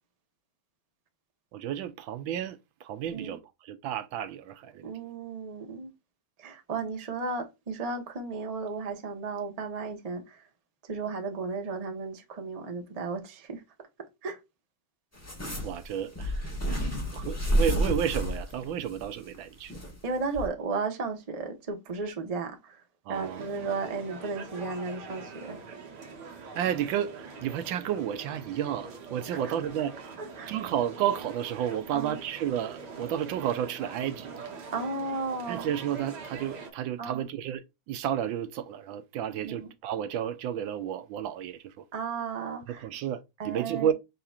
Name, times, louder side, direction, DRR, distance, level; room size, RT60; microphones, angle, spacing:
voice 1, 1.5-4.8 15.6-16.5 17.1-19.8 23.1-23.7 26.4-30.1 30.5-34.5 35.5-41.9 42.7-43.9, right 10 dB, 80° right, 1.3 m, -32 dB
voice 2, 4.8-5.9 6.4-10.5 10.8-13.6 14.2-14.4 16.7-16.8 20.0-22.8 23.1-25.6 29.3-29.5 30.2-30.5 31.9-32.2 34.7-35.7 37.0-37.2 39.4-39.7 41.9-42.9 43.4-43.9, right 4 dB, 35° right, 0.6 m, -34 dB
sound 1, 15.2-20.0 20.4-20.5, equal, 10° left, 1.1 m, -30 dB
sound 2, 23.1-36.7, right 4 dB, 60° right, 1.5 m, -44 dB
5.7 x 3.8 x 2.3 m
omnidirectional pair, 2.2 m